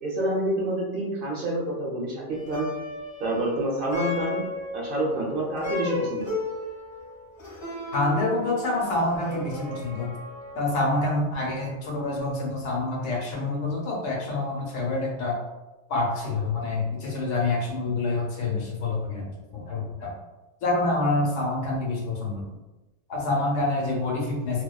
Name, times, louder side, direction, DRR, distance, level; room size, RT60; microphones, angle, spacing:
voice 1, 0.0-2.7 3.2-4.4 4.7-6.3, right 1 dB, 60° right, -3 dB, 0.6 m, -28 dB
Plucked string instrument, 2.3-11.7, left 2 dB, 30° left, 0.9 m, -35 dB
voice 2, 7.9-10.1 10.5-15.4 15.9-20.1 20.6-22.4 23.1-24.6, left 2 dB, 85° left, -2 dB, 1.0 m, -27 dB
2.5 x 2.2 x 2.2 m, 1.0 s
omnidirectional pair, 1.3 m